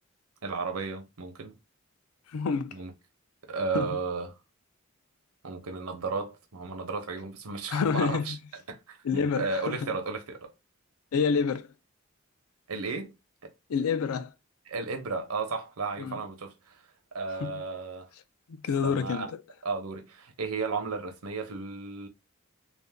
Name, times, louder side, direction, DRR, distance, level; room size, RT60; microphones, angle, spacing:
voice 1, 0.4-1.6 2.7-2.9 3.5-4.4 5.4-8.4 8.7-10.5 12.7-13.1 13.4-13.5 14.7-16.8 17.1-18.1 18.8-19.3 19.6-22.1, right 4 dB, 85° right, 0.8 m, -34 dB
voice 2, 2.3-2.7 3.7-4.0 7.7-8.4 9.0-9.9 11.1-11.7 13.7-14.3 16.0-16.2 17.4-17.6 18.5-19.4, left 5 dB, 80° left, 0.4 m, -28 dB
2.6 x 2.1 x 3.4 m
head